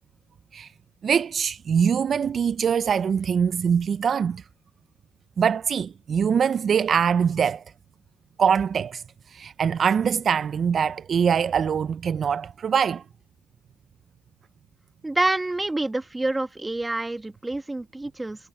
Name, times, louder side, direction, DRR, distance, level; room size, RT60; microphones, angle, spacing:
voice 1, 1.0-4.4 5.4-7.6 8.4-13.0, right 7 dB, 50° right, 0.3 m, -23 dB
voice 2, 15.0-18.5, right 2 dB, 15° right, 1.3 m, -27 dB
cardioid pair, 90°, 0 cm